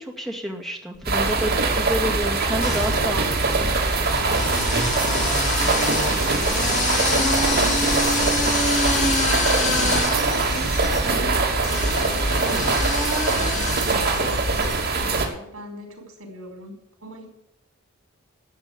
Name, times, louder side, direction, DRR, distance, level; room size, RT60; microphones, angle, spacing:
voice 1, 0.0-3.7, equal, ahead, 2 dB, 2.2 m, -29 dB
sound 1, 1.0-15.3, right 3 dB, 45° right, 2.9 m, -23 dB
sound 2, 1.3-1.9 2.6-14.9, left 2 dB, 35° left, 2.7 m, -27 dB
voice 2, 4.5-9.2 9.8-17.3, right 2 dB, 70° right, 3 dB, 5.4 m, -39 dB
13.0 x 8.9 x 8.6 m, 0.81 s
head